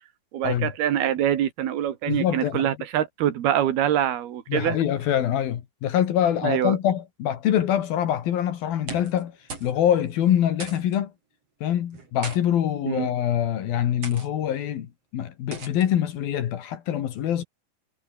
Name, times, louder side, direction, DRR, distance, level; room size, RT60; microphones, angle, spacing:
voice 1, 0.3-4.8 6.4-6.8 12.9-13.1, right 11 dB, 85° right, 3.9 m, -24 dB
voice 2, 2.1-2.7 4.5-9.3 9.6-11.1 11.6-17.4, left 10 dB, 75° left, 3.6 m, -24 dB
sound 1, 8.7-9.2 9.5-9.8 10.0-10.1 10.6-11.0 11.9-12.4 13.2-13.4 14.0-14.3 15.5-15.9, right 4 dB, 40° right, 6.3 m, -38 dB
omnidirectional pair, 4.4 m